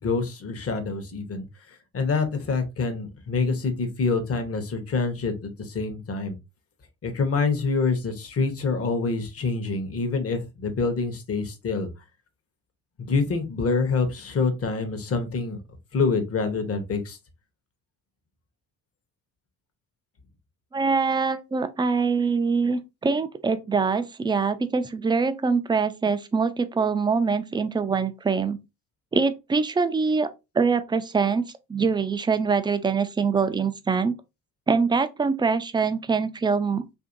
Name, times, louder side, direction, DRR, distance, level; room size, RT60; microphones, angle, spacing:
voice 1, 0.0-1.5 1.9-6.4 7.0-11.9 13.1-15.6 15.9-17.2, left 4 dB, 40° left, 0.9 m, -26 dB
voice 2, 20.7-28.6 29.1-30.3 30.5-34.1 34.7-36.8, right 5 dB, 15° right, 0.4 m, -24 dB
2.8 x 2.6 x 2.6 m
supercardioid pair, 70°, 36 cm